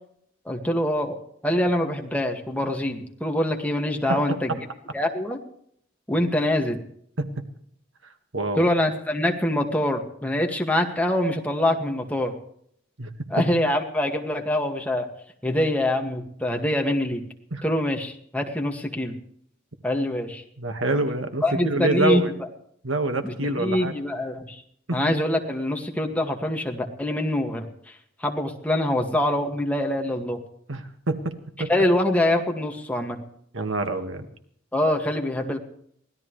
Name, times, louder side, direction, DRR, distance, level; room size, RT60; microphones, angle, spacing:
voice 1, 0.5-1.2 1.4-4.6 4.9-5.4 6.1-6.8 8.6-12.3 13.3-15.1 15.4-17.2 17.6-19.1 19.8-20.4 21.4-22.5 23.2-24.6 24.9-27.7 28.2-30.4 31.7-33.2 34.7-35.6, left 1 dB, 10° left, 2 dB, 2.1 m, -24 dB
voice 2, 4.1-4.6 7.2-7.3 8.3-8.7 13.0-13.1 17.5-17.6 20.6-22.3 22.8-23.9 24.9-25.1 30.7-31.3 31.6-31.7 33.5-34.3, right 2 dB, 70° right, 7 dB, 1.8 m, -26 dB
24.5 x 16.5 x 3.3 m, 0.66 s
head